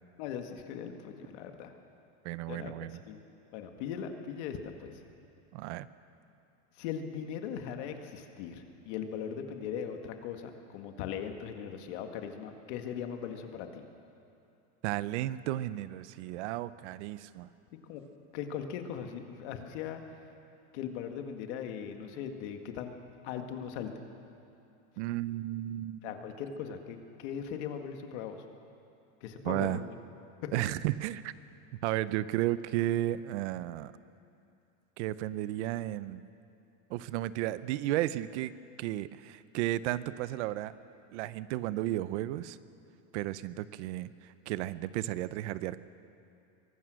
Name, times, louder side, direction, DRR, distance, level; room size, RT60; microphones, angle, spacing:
voice 1, 0.2-1.7 2.5-2.7 3.1-3.2 3.5-4.9 6.8-13.8 17.9-18.0 18.3-20.0 20.7-22.9 23.2-23.9 26.0-28.4 29.2-29.9 30.4-30.5, left 8 dB, 55° left, 5 dB, 1.9 m, -39 dB
voice 2, 2.2-3.0 5.5-5.9 14.8-17.5 25.0-26.1 29.4-29.8 30.5-31.3 31.8-33.9 35.0-36.2 36.9-38.5 38.8-40.7 41.1-42.6 43.1-45.8, right 15 dB, 60° right, 16 dB, 0.7 m, -33 dB
23.5 x 18.5 x 6.4 m, 2.7 s
supercardioid pair, 170°, 40 cm